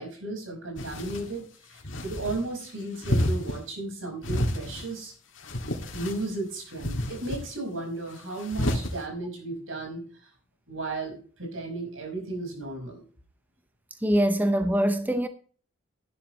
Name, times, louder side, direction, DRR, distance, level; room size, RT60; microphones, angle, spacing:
voice 1, 0.0-5.1 5.9-10.0 10.7-13.0, right 2 dB, 75° right, 5.5 m, -34 dB
sound 1, 0.8-1.3 1.8-2.4 3.0-3.6 4.2-4.9 5.4-6.3 6.8-7.4 8.4-8.9, left 1 dB, 65° left, 2.2 m, -30 dB
voice 2, 14.0-15.3, equal, 10° right, 0.6 m, -23 dB
12.0 x 11.5 x 3.2 m
head